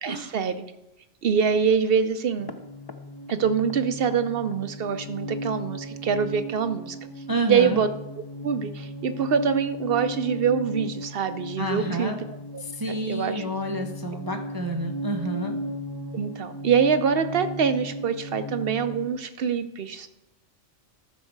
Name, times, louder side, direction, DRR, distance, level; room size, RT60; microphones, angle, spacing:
voice 1, 0.0-0.6 1.2-2.5 3.3-7.0 7.5-7.9 8.2-12.1 12.5-13.5 16.1-20.1, right 6 dB, 60° right, 10 dB, 0.7 m, -25 dB
sound 1, 2.4-19.1, equal, 30° left, 0.4 m, -36 dB
voice 2, 7.3-7.8 11.6-12.2 12.6-15.6, right 1 dB, 20° right, 3 dB, 0.7 m, -29 dB
13.5 x 6.5 x 4.6 m, 0.92 s
omnidirectional pair, 1.2 m